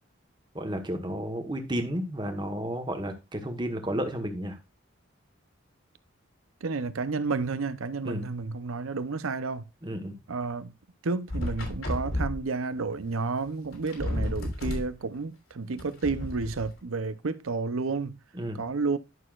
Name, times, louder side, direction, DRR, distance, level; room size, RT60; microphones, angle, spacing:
voice 1, 0.5-4.6 8.0-8.2 9.8-10.2 18.4-18.6, equal, 20° right, 1.2 m, -32 dB
voice 2, 6.6-9.6 10.3-10.7 11.0-18.2 18.5-19.0, right 4 dB, 80° right, 0.7 m, -31 dB
sound 1, 11.3-12.4 13.5-13.6 13.7-14.9 15.8-16.7, left 1 dB, 90° left, 3.3 m, -31 dB
11.0 x 6.4 x 2.4 m
head